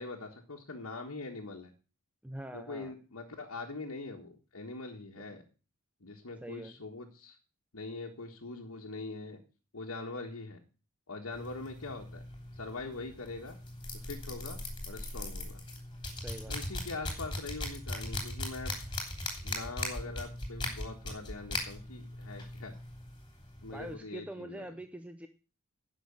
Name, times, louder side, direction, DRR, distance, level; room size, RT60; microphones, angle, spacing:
voice 1, 0.0-1.7 2.5-5.4 6.0-7.4 7.7-9.4 9.7-10.6 11.1-12.2 12.5-13.6 13.9-14.6 14.8-15.6 16.5-18.7 19.4-22.8 23.6-24.7, left 3 dB, 80° left, 0 dB, 1.6 m, -42 dB
voice 2, 2.2-2.9 6.4-6.8 16.2-16.6 23.7-25.3, right 1 dB, 5° right, 8 dB, 0.5 m, -44 dB
sound 1, 11.3-23.9, left 1 dB, 20° left, 3.1 m, -40 dB
10.5 x 6.3 x 7.2 m, 0.36 s
head